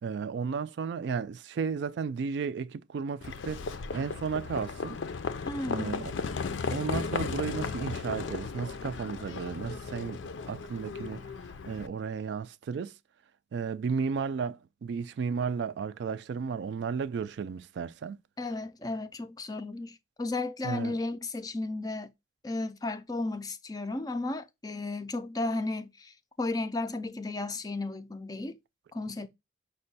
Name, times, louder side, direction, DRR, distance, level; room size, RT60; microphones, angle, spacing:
voice 1, 0.0-5.0 5.7-6.1 6.7-11.3 11.7-13.0 13.5-18.2 20.6-21.0, right 6 dB, 70° right, 0.3 m, -34 dB
Livestock farm animals working animals, 3.2-11.9, left 5 dB, 85° left, 0.5 m, -35 dB
voice 2, 5.5-6.1 18.4-22.1 22.4-28.6 28.9-29.3, left 2 dB, 20° left, 0.3 m, -34 dB
5.4 x 2.2 x 3.9 m
head